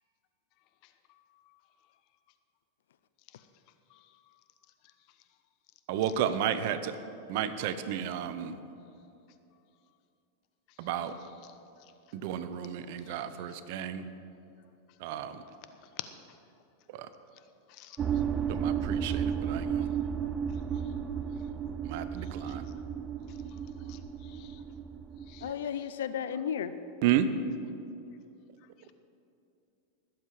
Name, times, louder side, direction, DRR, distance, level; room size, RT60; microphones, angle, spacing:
voice 1, 0.8-1.6 3.3-3.5 3.9-4.4 4.8-5.2 7.1-7.2 10.7-10.9 11.2-11.9 12.6-13.5 15.1-15.6 15.8-16.4 17.7-18.4 19.1-19.2 20.5-21.2 21.6-21.7 22.2-22.7 23.3-24.6 25.2-25.8 28.8-28.9, left 13 dB, 55° left, 10 dB, 1.0 m, -53 dB
voice 2, 5.9-6.9 7.3-8.6 10.8-11.1 12.1-14.1 15.0-15.4 16.9-17.1 18.5-19.9 21.8-22.7 27.0-27.3, right 10 dB, 60° right, 12 dB, 0.9 m, -32 dB
sound 1, 18.0-25.5, right 8 dB, 25° right, 0.6 m, -33 dB
voice 3, 25.4-26.7, left 8 dB, 80° left, 13 dB, 0.6 m, -33 dB
20.0 x 7.7 x 4.9 m, 2.7 s
hypercardioid pair, 110°, 0 cm